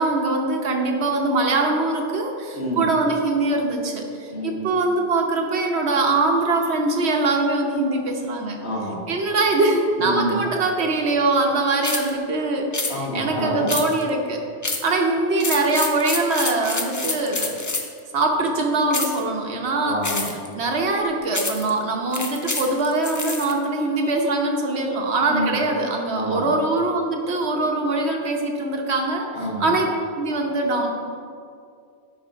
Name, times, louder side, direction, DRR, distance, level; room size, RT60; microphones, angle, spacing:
voice 1, 0.0-8.6 9.1-14.4 14.8-17.5 18.1-29.9 30.2-30.9, right 2 dB, 85° right, 2 dB, 1.2 m, -22 dB
voice 2, 4.3-4.8 8.6-9.0 10.0-10.4 12.9-13.7 19.8-20.2 25.3-25.6 26.1-26.4 29.3-29.7, equal, 80° left, -5 dB, 2.0 m, -27 dB
sound 1, 11.8-12.1 12.7-13.0 13.7-14.1 14.6-14.9 15.4-18.0 18.9-19.2 20.0-20.5 21.3-21.7 22.1-23.5, left 3 dB, 25° left, 0.4 m, -27 dB
10.0 x 3.6 x 5.2 m, 2.4 s
omnidirectional pair, 1.1 m